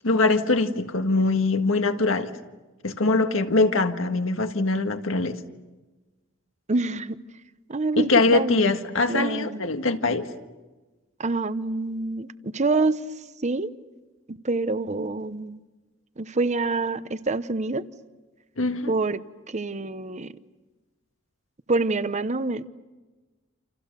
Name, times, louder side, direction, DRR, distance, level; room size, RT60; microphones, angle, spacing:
voice 1, 0.0-2.3 2.8-5.4 8.0-10.3 18.6-19.0, left 3 dB, 85° left, 1.7 m, -22 dB
voice 2, 6.7-7.2 7.7-8.7 9.1-9.6 11.2-13.0 13.4-13.7 14.3-15.6 16.2-17.8 18.9-19.2 19.5-20.3 21.7-22.7, right 3 dB, 35° right, 0.9 m, -26 dB
29.0 x 28.5 x 6.8 m
head